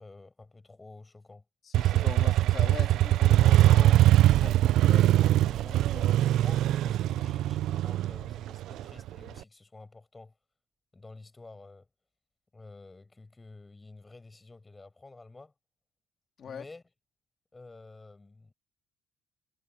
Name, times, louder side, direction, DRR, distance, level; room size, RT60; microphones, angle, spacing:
voice 1, 0.0-1.4 3.7-3.9 4.3-10.3 10.9-11.9 12.5-15.5 16.4-16.8 17.5-18.5, left 3 dB, 15° left, 6.8 m, -50 dB
voice 2, 1.6-4.0 4.4-4.5 4.9-5.2 5.7-5.8 16.4-16.7, left 7 dB, 45° left, 3.1 m, -41 dB
Motorcycle, 1.7-9.4, right 14 dB, 75° right, 0.4 m, -22 dB
Piano, 3.5-6.7, right 5 dB, 30° right, 6.4 m, -53 dB
cardioid pair, 135°, 0 cm